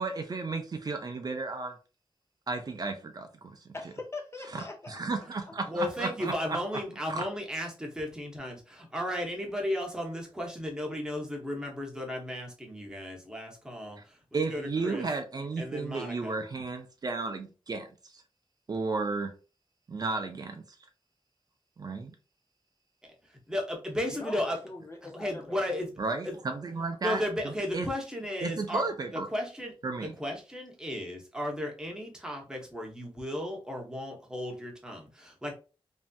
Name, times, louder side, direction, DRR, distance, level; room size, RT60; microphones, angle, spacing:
voice 1, 0.0-1.8 2.5-3.6 4.5-4.6 4.9-6.6 7.1-7.3 14.3-17.9 18.1-18.2 18.7-19.3 19.9-20.6 21.8-22.1 26.0-27.2 27.7-27.9 28.4-29.3 29.8-30.1, right 3 dB, 45° right, 0.4 m, -33 dB
voice 2, 3.7-5.0 5.5-5.6 24.1-25.8, left 3 dB, 30° left, 0.5 m, -42 dB
voice 3, 5.7-15.0 15.6-16.4 23.0-23.1 23.5-24.6 25.1-25.9 26.2-26.4 27.0-28.8 29.1-29.7 30.0-35.5, left 1 dB, 5° right, 0.8 m, -35 dB
3.2 x 2.6 x 2.2 m
wide cardioid pair, 145°, 9 cm